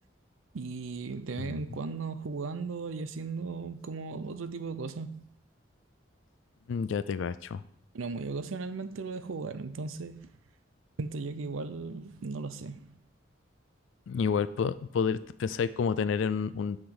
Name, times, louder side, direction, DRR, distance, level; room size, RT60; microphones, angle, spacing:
voice 1, 0.5-5.2 7.9-10.3 11.0-13.0, right 4 dB, 85° right, 0.6 m, -36 dB
voice 2, 6.7-7.6 14.1-16.8, left 6 dB, 70° left, 0.3 m, -29 dB
8.6 x 5.1 x 3.9 m
head